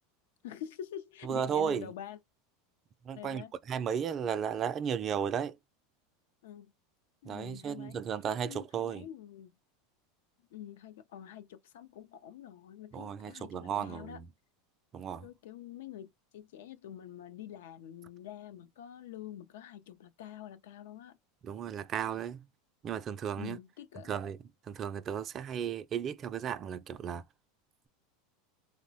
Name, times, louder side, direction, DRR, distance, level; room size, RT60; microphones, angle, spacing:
voice 1, 0.4-2.2 3.1-3.5 6.4-6.7 7.2-8.1 8.4-9.5 10.5-14.2 15.2-21.2 23.4-24.1, left 10 dB, 80° left, 0.5 m, -46 dB
voice 2, 1.3-1.8 3.1-5.6 7.3-9.1 12.9-14.2 14.9-15.3 21.4-22.4 22.8-23.6 24.1-24.4 24.7-27.2, right 8 dB, 35° right, 0.3 m, -34 dB
2.9 x 2.1 x 2.7 m
supercardioid pair, 115°, 0 cm